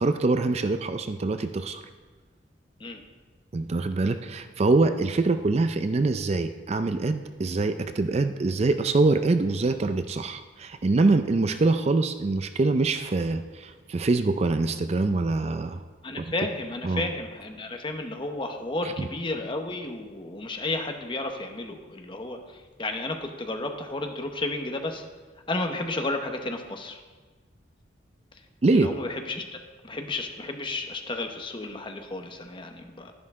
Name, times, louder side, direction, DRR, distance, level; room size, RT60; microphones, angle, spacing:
voice 1, 0.0-1.8 3.5-15.8 16.2-16.3 16.8-17.1 19.0-19.1 28.6-28.9, right 3 dB, 35° right, 9 dB, 0.4 m, -24 dB
voice 2, 16.0-25.0 25.5-27.0 28.7-29.6 29.8-33.1, left 2 dB, 25° left, 5 dB, 0.9 m, -32 dB
11.5 x 11.0 x 3.6 m, 1.4 s
head